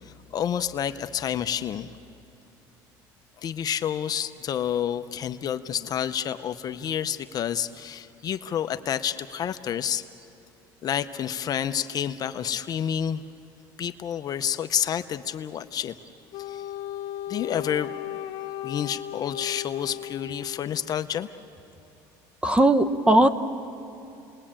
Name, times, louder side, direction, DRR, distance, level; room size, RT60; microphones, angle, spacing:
voice 1, 0.0-1.9 3.4-10.0 10.8-13.2 13.8-16.0 16.4-16.7 17.3-17.9 18.6-21.3, left 9 dB, 40° left, 10 dB, 0.7 m, -29 dB
Wind instrument woodwind instrument, 16.3-20.9, left 12 dB, 80° left, 1.2 m, -36 dB
voice 2, 22.4-23.3, right 1 dB, 10° right, 11 dB, 0.9 m, -18 dB
29.5 x 20.5 x 8.8 m, 2.8 s
cardioid pair, 130°, 10 cm